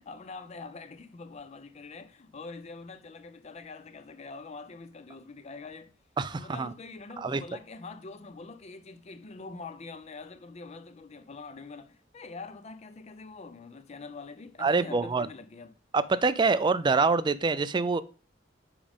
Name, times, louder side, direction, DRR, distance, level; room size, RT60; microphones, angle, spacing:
voice 1, 0.0-5.9 6.3-15.8, left 4 dB, 35° left, 0.5 m, -44 dB
voice 2, 6.2-6.7 7.2-7.4 14.6-15.3 15.9-18.0, right 4 dB, 25° right, 0.3 m, -25 dB
7.0 x 5.1 x 3.6 m
head